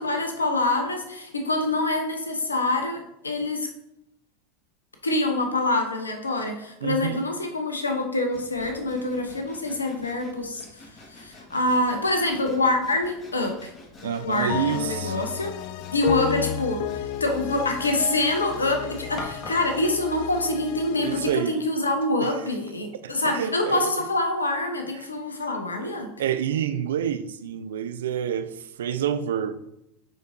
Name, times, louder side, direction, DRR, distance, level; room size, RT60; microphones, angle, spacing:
voice 1, 0.0-3.7 5.0-13.7 14.2-15.6 15.9-26.1, left 2 dB, 85° left, 5 dB, 0.9 m, -26 dB
voice 2, 6.8-7.3 14.0-15.3 21.0-21.6 22.2-22.3 23.0-24.0 25.8-29.6, right 9 dB, 70° right, 12 dB, 0.4 m, -28 dB
Sawing, 8.3-19.7, left 2 dB, 30° left, 1.6 m, -46 dB
sound 1, 14.0-21.4, left 11 dB, 55° left, 0.3 m, -32 dB
9.2 x 4.2 x 2.7 m, 0.82 s
figure-of-eight pair, 80°, 0 cm